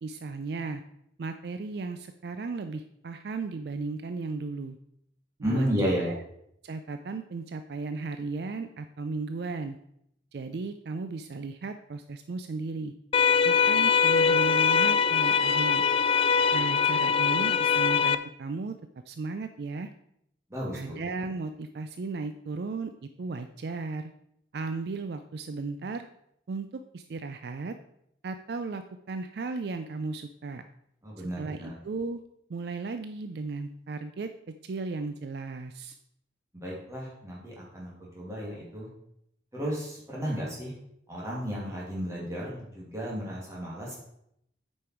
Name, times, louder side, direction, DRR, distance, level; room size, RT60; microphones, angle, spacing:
voice 1, 0.0-0.8 1.2-4.8 5.4-5.7 6.0-6.2 6.6-9.8 10.3-12.9 13.4-15.8 16.5-18.7 19.1-19.9 20.7-24.1 24.5-26.1 26.5-27.8 28.2-30.7 31.2-32.2 32.5-34.3 34.6-36.0, right 3 dB, 60° right, 9 dB, 0.4 m, -35 dB
voice 2, 5.4-6.1 20.5-20.9 31.0-31.7 36.6-38.9 39.5-40.7 41.1-44.0, equal, 15° right, -5 dB, 2.4 m, -33 dB
sound 1, 13.1-18.1, left 6 dB, 30° left, 0.3 m, -22 dB
8.4 x 5.4 x 4.4 m, 0.76 s
head